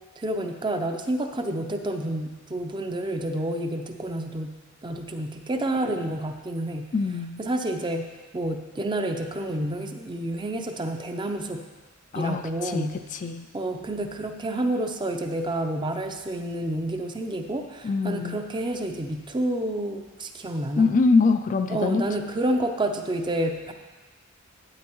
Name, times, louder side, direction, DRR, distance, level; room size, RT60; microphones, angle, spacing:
voice 1, 0.2-6.9 7.4-8.1 8.3-11.6 12.1-13.0 13.5-20.9 21.7-23.7, right 1 dB, 20° right, 5 dB, 0.5 m, -29 dB
voice 2, 6.9-7.4 12.1-13.5 17.8-18.4 20.8-22.0, left 4 dB, 35° left, 7 dB, 0.3 m, -24 dB
12.0 x 8.7 x 3.0 m, 1.3 s
head